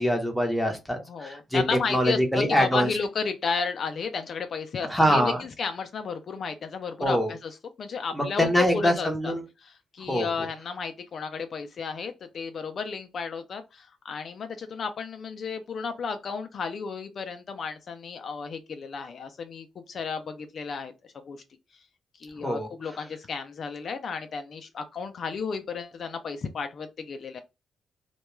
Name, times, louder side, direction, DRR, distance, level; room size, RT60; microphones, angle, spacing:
voice 1, 0.0-1.6 1.9-2.9 4.8-5.4 7.0-7.3 8.1-9.4 10.1-10.5 22.4-23.0, equal, 5° left, 0.7 m, -24 dB
voice 2, 1.1-9.3 9.6-20.9 21.2-21.4 22.2-27.4, left 5 dB, 55° left, 0.3 m, -33 dB
2.2 x 2.2 x 3.0 m
cardioid pair, 130°, 0 cm